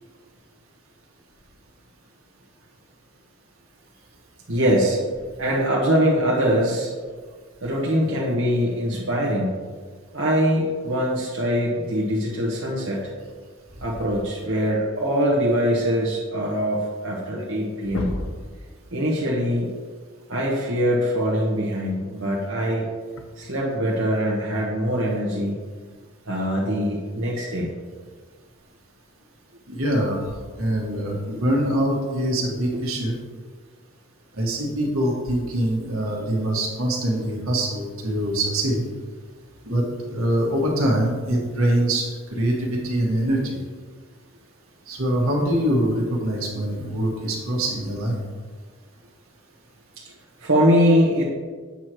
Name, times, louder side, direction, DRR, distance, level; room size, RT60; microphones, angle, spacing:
voice 1, 4.5-5.0 5.4-6.9 7.6-9.5 10.1-13.1 13.8-18.1 18.9-19.7 20.3-22.9 23.4-25.6 26.3-27.7 50.4-51.2, equal, 70° right, -5 dB, 1.1 m, -22 dB
sound 1, 17.4-17.6 17.8-18.5 20.2-20.3 22.1-22.3 23.2-23.3, left 1 dB, 85° left, 0.7 m, -30 dB
voice 2, 29.7-30.2 30.6-33.1 34.4-38.8 39.6-43.6 44.9-48.2, right 1 dB, 85° right, -1 dB, 1.6 m, -24 dB
8.3 x 3.0 x 6.2 m, 1.5 s
head